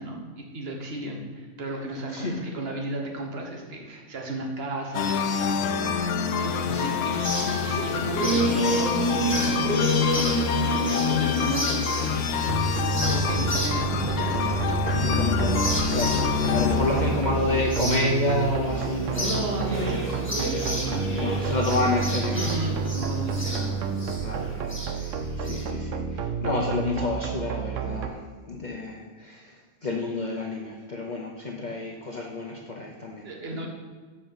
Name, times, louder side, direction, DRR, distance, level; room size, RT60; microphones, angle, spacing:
voice 1, 0.0-5.9 6.4-12.5 13.0-14.9 16.4-16.6 19.2-21.9 22.3-23.7 33.2-33.7, right 1 dB, 55° right, 1 dB, 1.6 m, -34 dB
sound 1, 4.9-17.2, left 7 dB, 85° left, 0.9 m, -26 dB
sound 2, 6.9-25.6, right 1 dB, 10° left, 1.9 m, -30 dB
sound 3, 12.5-28.1, right 6 dB, 85° right, 1.1 m, -30 dB
voice 2, 14.9-19.5 21.1-22.5 23.4-23.8 24.2-25.1 25.4-29.6 29.8-33.3, left 2 dB, 40° left, -1 dB, 0.9 m, -30 dB
7.4 x 5.6 x 7.0 m, 1.4 s
omnidirectional pair, 1.3 m